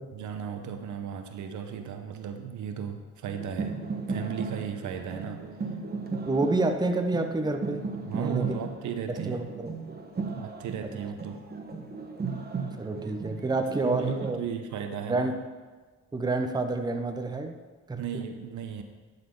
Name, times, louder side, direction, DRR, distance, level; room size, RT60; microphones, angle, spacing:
voice 1, 0.1-5.5 8.1-9.4 10.3-11.4 13.8-15.4 18.0-18.8, right 7 dB, 75° right, 6 dB, 0.9 m, -35 dB
sound 1, 3.3-14.3, right 4 dB, 30° right, 1.1 m, -36 dB
voice 2, 6.2-7.8 8.1-8.6 9.1-9.7 12.8-14.4 15.1-15.3 16.1-17.6 17.9-18.0, right 2 dB, 15° right, 6 dB, 0.7 m, -28 dB
11.5 x 4.3 x 5.3 m, 1.4 s
cardioid pair, 90°, 30 cm